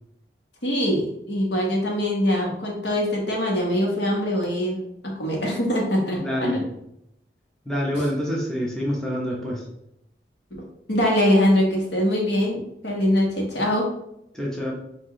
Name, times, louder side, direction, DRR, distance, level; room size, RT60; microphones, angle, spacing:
voice 1, 0.6-6.6 7.9-8.0 10.5-13.9, equal, 80° left, -1 dB, 1.3 m, -23 dB
voice 2, 6.1-6.7 7.7-9.6 14.3-14.7, equal, 5° left, -4 dB, 0.9 m, -26 dB
5.8 x 2.7 x 3.1 m, 0.80 s
head